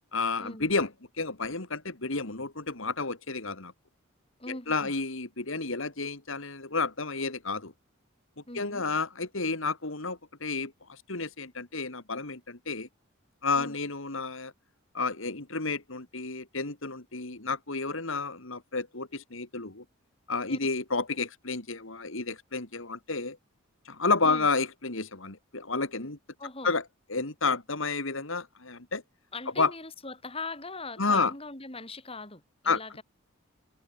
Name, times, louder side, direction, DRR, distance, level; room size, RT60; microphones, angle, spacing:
voice 1, 0.1-0.9 1.2-3.7 4.5-7.7 8.5-12.9 13.4-14.5 14.9-19.8 20.3-23.4 23.9-26.2 26.6-26.8 27.1-29.0 29.6-29.7 31.0-31.3 32.7-32.8, left 4 dB, 65° left, 2.5 m, -31 dB
voice 2, 4.4-4.9 8.5-8.8 13.6-13.7 20.5-20.6 24.2-24.5 26.4-26.7 29.3-33.0, left 3 dB, 25° left, 6.1 m, -40 dB
head